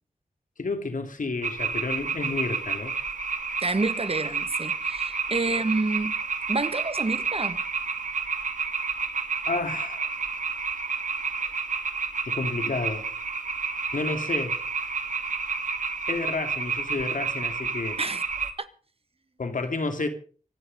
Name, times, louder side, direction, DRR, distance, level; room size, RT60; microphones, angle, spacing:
voice 1, 0.6-2.9 5.5-5.6 9.5-10.1 12.3-13.1 13.9-14.6 16.1-18.0 19.4-20.1, left 3 dB, 75° left, 2.7 m, -30 dB
sound 1, 1.4-18.5, right 5 dB, 70° right, 1.9 m, -30 dB
voice 2, 3.6-6.1 6.5-7.6 18.0-18.7, right 3 dB, 45° right, 1.5 m, -29 dB
24.5 x 10.0 x 5.3 m
wide cardioid pair, 75°, 14 cm